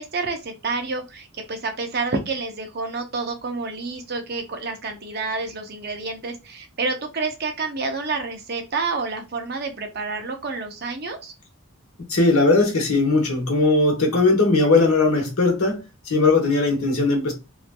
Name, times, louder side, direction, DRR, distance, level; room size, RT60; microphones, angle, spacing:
voice 1, 0.0-11.3, right 3 dB, 45° right, 0.7 m, -29 dB
voice 2, 12.1-17.3, left 3 dB, 85° left, 1.1 m, -19 dB
3.1 x 2.5 x 2.2 m
head